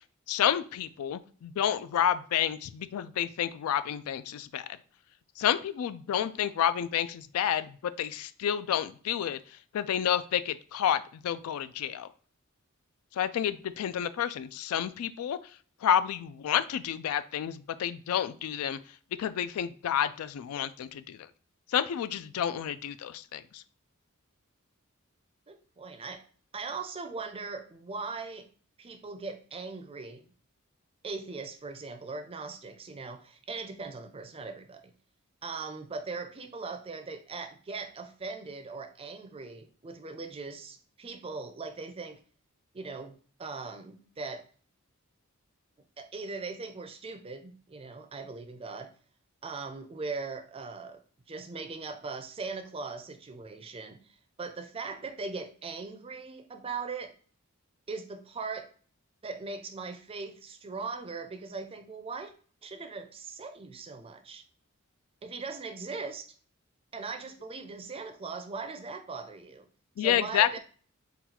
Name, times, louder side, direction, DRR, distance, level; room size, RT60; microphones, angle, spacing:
voice 1, 0.3-4.7 5.4-12.1 13.1-15.4 15.8-18.8 19.2-21.3 21.7-23.6 70.0-70.6, left 9 dB, 85° left, 14 dB, 0.3 m, -30 dB
voice 2, 25.5-26.2 26.5-28.5 28.8-30.3 31.0-34.9 35.4-42.2 42.7-44.5 46.0-48.9 49.4-51.0 51.3-57.2 57.9-58.7 59.2-62.3 62.6-64.4 65.2-66.4 66.9-69.7 70.0-70.6, right 4 dB, 25° right, 7 dB, 0.4 m, -40 dB
3.9 x 2.3 x 4.2 m, 0.43 s
head